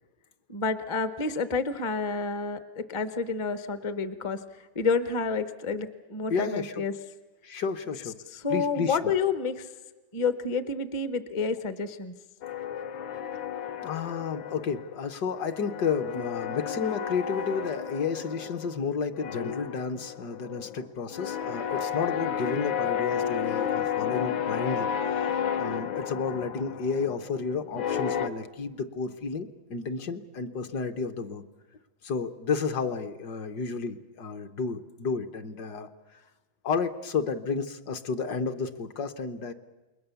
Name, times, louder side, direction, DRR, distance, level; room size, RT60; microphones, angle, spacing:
voice 1, 0.5-6.9 8.3-9.7 10.1-12.1, left 4 dB, 30° left, 11 dB, 0.6 m, -29 dB
voice 2, 6.3-6.8 7.4-8.1 8.5-9.0 13.8-24.9 25.2-31.4 32.0-36.2 36.6-39.5, left 5 dB, 60° left, 8 dB, 1.5 m, -32 dB
sound 1, 12.4-15.0 15.2-18.9 19.2-28.3, left 9 dB, 80° left, 1.7 m, -32 dB
28.0 x 21.5 x 7.0 m, 1.1 s
omnidirectional pair, 2.1 m